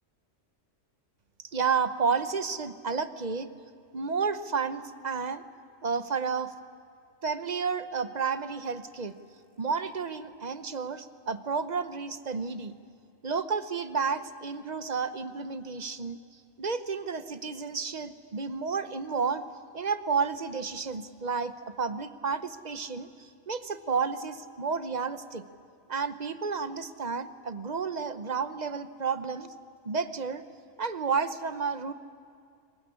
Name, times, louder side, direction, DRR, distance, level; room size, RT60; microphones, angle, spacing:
voice 1, 1.5-3.5 3.9-5.4 5.8-6.5 7.2-9.2 9.6-12.7 13.2-16.2 16.6-19.5 19.7-25.4 25.9-29.5 29.8-30.4 30.8-31.9, right 5 dB, 40° right, 11 dB, 0.9 m, -31 dB
23.0 x 20.5 x 9.8 m, 2.4 s
omnidirectional pair, 1.3 m